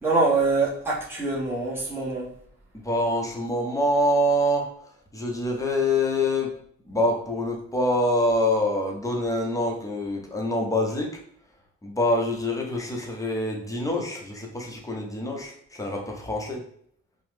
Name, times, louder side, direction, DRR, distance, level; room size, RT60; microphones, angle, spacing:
voice 1, 0.0-2.3, right 3 dB, 10° right, -6 dB, 1.0 m, -24 dB
voice 2, 2.8-4.7 5.1-6.5 6.9-11.2 11.8-16.6, left 1 dB, 10° left, 0 dB, 0.7 m, -25 dB
2.9 x 2.0 x 3.2 m, 0.66 s
cardioid pair, 90°, 30 cm